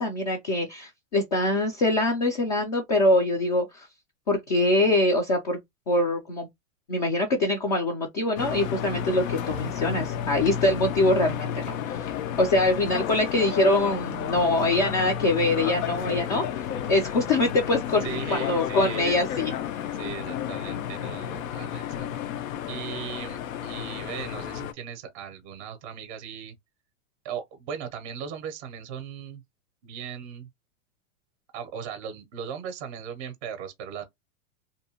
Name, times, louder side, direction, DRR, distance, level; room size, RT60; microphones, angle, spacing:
voice 1, 0.0-3.9 4.3-5.6 5.9-6.5 6.9-19.5, left 2 dB, 35° left, 0.4 m, -24 dB
sound 1, 8.4-24.7, left 9 dB, 80° left, 0.6 m, -32 dB
voice 2, 18.0-19.2 19.9-22.2 22.7-26.6 27.2-29.4 29.8-30.5 31.5-34.0, right 7 dB, 25° right, 0.5 m, -38 dB
2.6 x 2.1 x 2.8 m
supercardioid pair, 170°, 40 cm